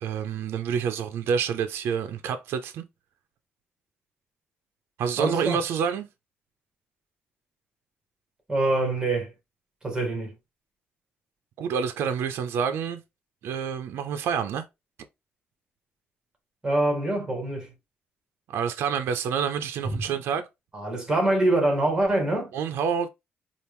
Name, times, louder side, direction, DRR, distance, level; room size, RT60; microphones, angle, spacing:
voice 1, 0.0-2.8 5.0-6.1 11.6-13.0 13.4-14.6 18.5-20.5 22.5-23.1, right 7 dB, 80° right, 0.6 m, -28 dB
voice 2, 5.2-5.6 8.5-9.3 9.8-10.3 16.6-17.7 19.8-20.0 20.7-22.5, right 2 dB, 15° right, 1.9 m, -25 dB
4.4 x 2.5 x 3.5 m
cardioid pair, 125°, 4 cm